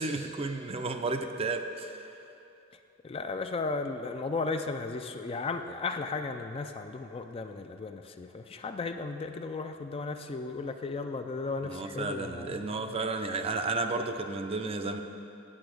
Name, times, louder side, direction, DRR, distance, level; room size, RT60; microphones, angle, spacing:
voice 1, 0.0-2.0 11.6-15.0, right 3 dB, 30° right, 7 dB, 0.5 m, -32 dB
voice 2, 3.0-13.0, left 3 dB, 30° left, 7 dB, 0.4 m, -35 dB
8.8 x 7.9 x 6.3 m, 2.9 s
head